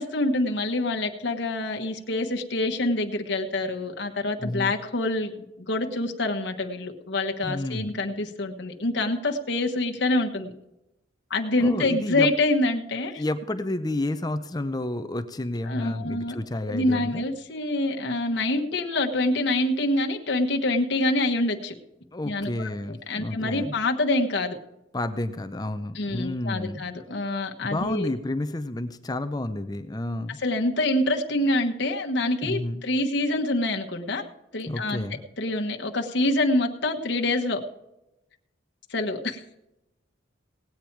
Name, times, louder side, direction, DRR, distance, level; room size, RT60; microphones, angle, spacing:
voice 1, 0.0-5.3 5.6-10.5 11.3-13.2 15.7-16.3 16.7-21.7 22.2-24.6 25.9-28.1 30.4-34.2 34.5-35.0 35.4-37.6 38.9-39.4, left 2 dB, 65° left, 3 dB, 1.2 m, -26 dB
voice 2, 4.4-4.8 7.4-7.9 11.6-12.3 13.1-17.3 22.1-23.7 24.9-26.8 27.6-30.4 32.4-32.8 34.7-35.2, left 1 dB, 20° left, 10 dB, 0.6 m, -30 dB
18.5 x 8.7 x 4.6 m, 0.92 s
head